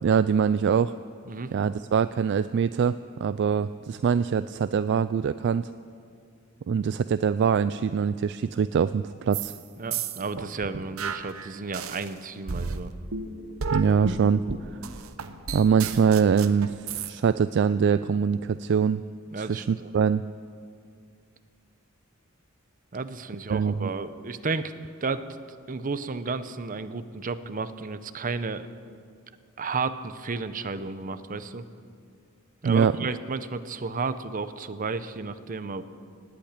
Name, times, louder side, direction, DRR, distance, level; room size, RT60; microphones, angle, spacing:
voice 1, 0.0-0.9 1.5-5.7 6.7-9.5 13.7-14.4 15.5-19.0 19.4-20.2 23.5-23.9 32.6-33.0, right 6 dB, 55° right, 13 dB, 0.3 m, -23 dB
sound 1, 9.3-9.6 9.9-12.1 12.5-17.1, right 5 dB, 80° right, 0.9 m, -32 dB
voice 2, 9.8-12.9 19.3-19.9 22.9-24.7 25.0-25.2 25.7-28.7 29.6-31.6 32.6-35.8, right 4 dB, 40° right, 12 dB, 0.7 m, -32 dB
18.5 x 8.7 x 8.9 m, 2.2 s
head